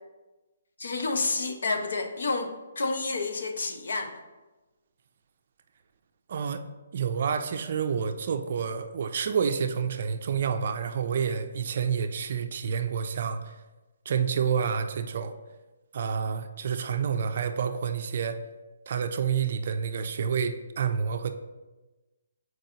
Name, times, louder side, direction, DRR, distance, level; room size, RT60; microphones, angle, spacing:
voice 1, 0.8-4.2, left 3 dB, 70° left, 6 dB, 0.7 m, -29 dB
voice 2, 6.3-6.7 6.9-13.5 14.1-15.3 15.9-18.4 18.9-21.3, right 7 dB, 40° right, 8 dB, 0.4 m, -29 dB
7.6 x 4.6 x 2.8 m, 1.1 s
hypercardioid pair, 175°, 0 cm